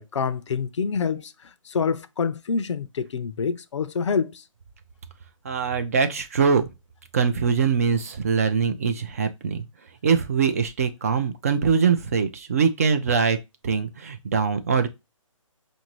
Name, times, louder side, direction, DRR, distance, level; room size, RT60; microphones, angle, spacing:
voice 1, 0.0-4.4, left 5 dB, 60° left, 0.5 m, -27 dB
voice 2, 5.4-6.7 7.1-9.6 10.0-13.4 13.6-14.9, right 5 dB, 25° right, 0.4 m, -22 dB
5.1 x 2.6 x 2.9 m
hypercardioid pair, 160°, 17 cm